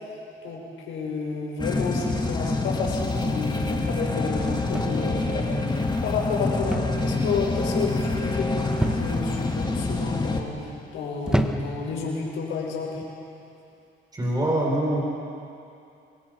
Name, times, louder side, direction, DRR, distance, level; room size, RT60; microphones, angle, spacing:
voice 1, 0.4-12.9, left 4 dB, 85° left, -2 dB, 5.6 m, -31 dB
sound 1, 1.6-10.4, left 3 dB, 20° left, 2.3 m, -26 dB
sound 2, 4.7-5.3 6.7-7.1 7.4-7.8 8.8-9.3 10.1-10.4 11.3-11.9 12.9-13.1, equal, 5° right, 1.4 m, -28 dB
voice 2, 14.1-15.0, right 1 dB, 20° right, -3 dB, 5.7 m, -24 dB
26.0 x 23.0 x 5.5 m, 2.6 s
cardioid pair, 90°, 20 cm